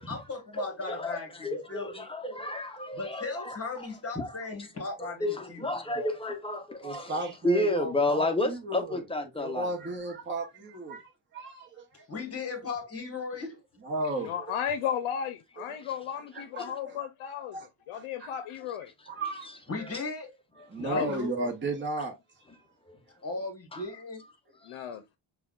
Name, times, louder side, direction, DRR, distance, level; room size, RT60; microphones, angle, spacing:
voice 1, 0.1-2.1 2.9-6.1 12.1-13.5 19.7-20.3 20.9-21.3 23.2-24.2, left 3 dB, 30° left, 1.3 m, -37 dB
voice 2, 0.6-3.6 4.2-4.3 5.0-7.1 7.4-9.7 22.9-23.0 23.7-23.8, left 1 dB, 10° left, 0.6 m, -31 dB
voice 3, 6.8-9.0 9.4-12.1 13.8-14.5 15.6-15.7 16.3-17.0 17.5-17.7 17.9-18.3 19.1-19.5 19.8-19.9 20.7-22.6, right 2 dB, 25° right, 0.8 m, -35 dB
voice 4, 14.2-17.6 17.9-18.9 20.7-21.1 24.7-25.0, left 8 dB, 80° left, 0.6 m, -34 dB
5.5 x 2.3 x 2.3 m
cardioid pair, 130°, 48 cm